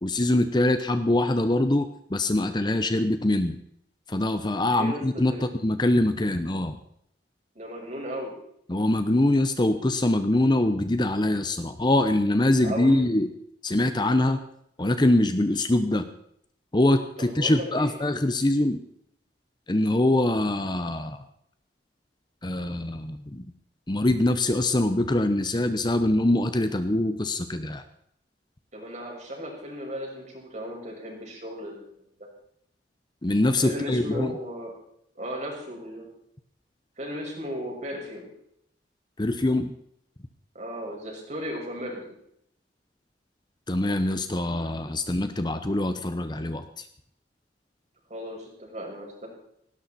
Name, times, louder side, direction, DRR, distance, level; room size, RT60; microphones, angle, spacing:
voice 1, 0.0-3.6 4.1-6.8 8.7-13.3 13.6-14.4 14.8-16.1 16.7-18.8 19.7-21.2 22.4-23.5 23.9-27.8 33.2-34.3 39.2-39.7 43.7-46.9, left 1 dB, 25° left, 9 dB, 0.8 m, -24 dB
voice 2, 4.6-5.4 7.6-8.3 12.6-13.0 17.2-18.1 28.7-32.0 33.6-34.7 35.2-36.1 37.0-38.3 40.5-42.1 48.1-49.3, equal, 40° right, 0 dB, 5.8 m, -36 dB
18.5 x 17.0 x 4.3 m, 0.71 s
head